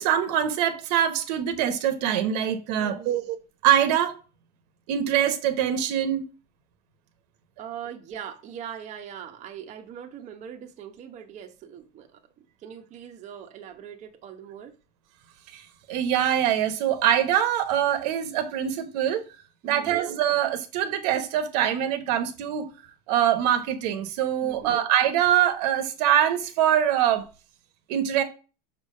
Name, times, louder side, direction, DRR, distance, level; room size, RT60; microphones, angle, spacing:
voice 1, 0.0-3.4 3.6-4.2 4.9-6.2 15.5-19.2 19.6-22.7 23.1-27.2 27.9-28.2, right 10 dB, 80° right, 1.1 m, -24 dB
voice 2, 2.8-3.3 7.6-14.7 19.6-20.0 24.4-24.8, right 9 dB, 35° right, 0.9 m, -41 dB
5.9 x 3.3 x 5.5 m
supercardioid pair, 140°, 21 cm